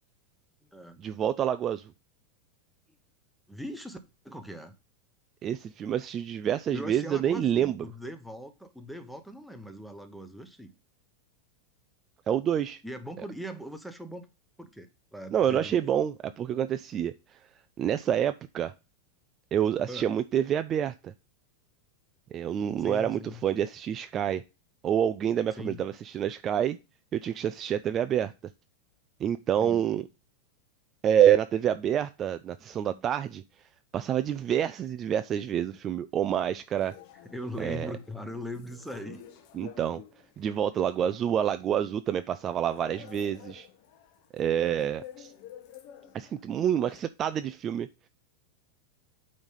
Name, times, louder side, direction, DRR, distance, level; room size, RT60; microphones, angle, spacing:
voice 1, 1.0-1.9 5.4-7.8 12.3-12.8 15.3-17.4 17.8-18.7 19.5-21.1 22.3-24.4 24.8-26.8 27.1-28.3 29.2-30.1 31.0-33.4 33.9-36.9 37.6-37.9 39.5-40.0 40.4-43.7 44.3-45.3 46.1-47.9, right 9 dB, 25° right, 0.3 m, -27 dB
voice 2, 3.5-4.0 4.2-4.7 6.7-10.7 12.8-14.3 14.6-15.9 19.9-20.1 22.8-23.4 25.6-25.8 29.6-29.8 32.9-33.0 37.2-39.2 44.6-44.9 46.0-46.3, equal, ahead, 0.9 m, -40 dB
sound 1, 36.8-47.0, left 9 dB, 50° left, 1.1 m, -51 dB
8.9 x 3.2 x 5.6 m
supercardioid pair, 150°, 0 cm